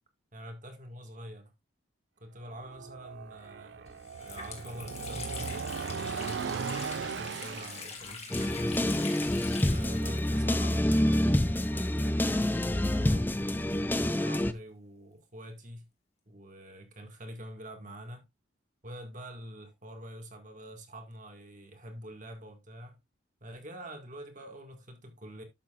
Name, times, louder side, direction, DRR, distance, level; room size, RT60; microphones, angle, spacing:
voice 1, 0.3-1.5 2.2-8.8 9.6-13.3 14.0-15.9 16.3-18.3 18.8-23.0 23.4-25.4, equal, 40° right, 2.0 m, -45 dB
sound 1, 2.5-7.9, right 6 dB, 60° right, 0.4 m, -37 dB
Water tap faucet, 3.4-3.5 3.9-11.6 11.8-11.9 12.8-14.3, left 5 dB, 30° left, 2.1 m, -44 dB
sound 2, 8.3-14.5, left 1 dB, 10° left, 0.4 m, -27 dB
12.0 x 6.9 x 2.5 m
head